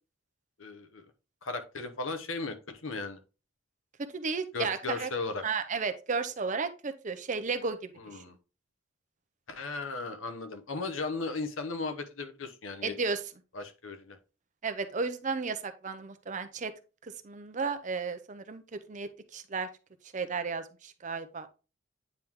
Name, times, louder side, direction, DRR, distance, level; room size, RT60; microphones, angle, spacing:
voice 1, 0.6-1.1 1.4-3.2 4.5-5.4 8.0-8.3 9.5-12.9 13.5-14.2, left 3 dB, 85° left, 8 dB, 0.9 m, -36 dB
voice 2, 4.1-5.1 5.4-8.2 12.8-13.2 14.6-16.7 17.0-19.7 20.1-21.5, right 4 dB, 40° right, 10 dB, 0.6 m, -34 dB
9.1 x 3.6 x 3.0 m, 0.32 s
head